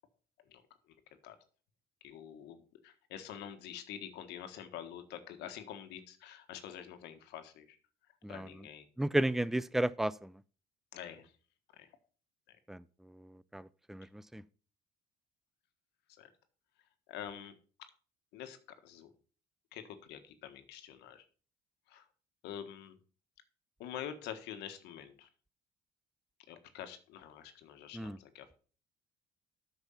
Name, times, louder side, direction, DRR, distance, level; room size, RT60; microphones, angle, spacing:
voice 1, 2.0-7.8 8.3-8.9 10.9-11.3 11.8-11.9 16.2-16.3 17.1-17.6 18.3-18.6 18.8-19.1 19.7-21.2 21.9-22.0 22.4-23.0 23.8-25.3 26.5-28.6, left 10 dB, 85° left, 1.4 m, -46 dB
voice 2, 9.0-10.3 12.7-12.8 13.2-14.4 27.9-28.2, right 1 dB, ahead, 0.4 m, -33 dB
8.6 x 6.3 x 5.6 m
cardioid pair, 110°, 17 cm